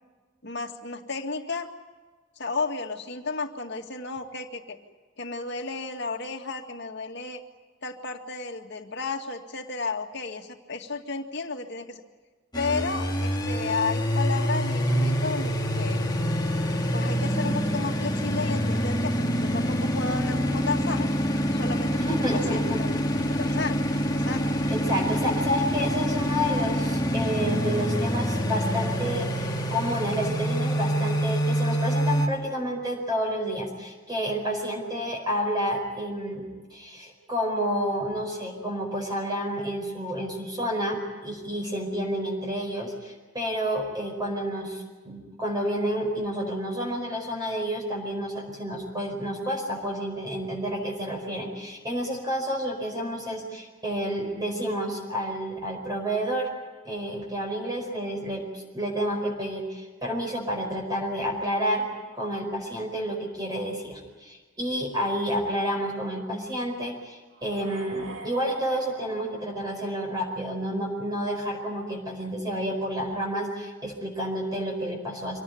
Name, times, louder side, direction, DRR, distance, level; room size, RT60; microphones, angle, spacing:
voice 1, 0.4-1.7 2.4-4.8 5.2-7.4 7.8-12.0 12.5-16.0 16.9-21.1 21.5-22.0 22.3-22.9 23.2-23.8 24.1-24.5, left 4 dB, 60° left, 4 dB, 2.2 m, -33 dB
sound 1, 12.5-32.3, equal, 20° left, 2.0 m, -26 dB
voice 2, 21.9-22.8 24.7-56.5 56.8-61.8 62.1-75.4, equal, 20° right, 0 dB, 4.8 m, -30 dB
sound 2, 67.3-70.4, right 3 dB, 65° right, 2.4 m, -45 dB
25.5 x 18.5 x 9.4 m, 1.3 s
head